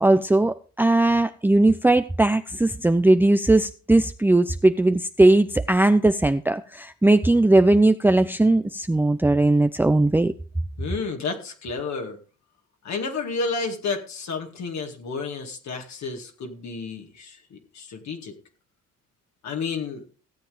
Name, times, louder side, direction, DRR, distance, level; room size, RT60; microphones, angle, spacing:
voice 1, 0.0-10.3, right 2 dB, 5° right, 0.6 m, -19 dB
voice 2, 10.8-12.2 12.8-18.3 19.4-20.0, left 4 dB, 65° left, 2.3 m, -31 dB
16.5 x 7.6 x 5.0 m
cardioid pair, 90°, 30 cm